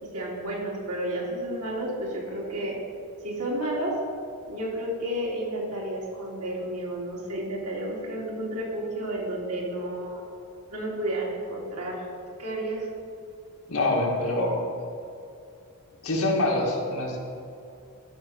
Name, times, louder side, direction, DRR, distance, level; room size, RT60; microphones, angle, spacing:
voice 1, 0.0-2.8 3.2-4.0 4.5-10.2 10.7-12.1 12.4-12.9, right 1 dB, 85° right, -3 dB, 2.7 m, -31 dB
voice 2, 13.7-14.6 16.0-17.2, left 2 dB, 70° left, -2 dB, 2.1 m, -25 dB
12.5 x 5.8 x 6.5 m, 2.5 s
head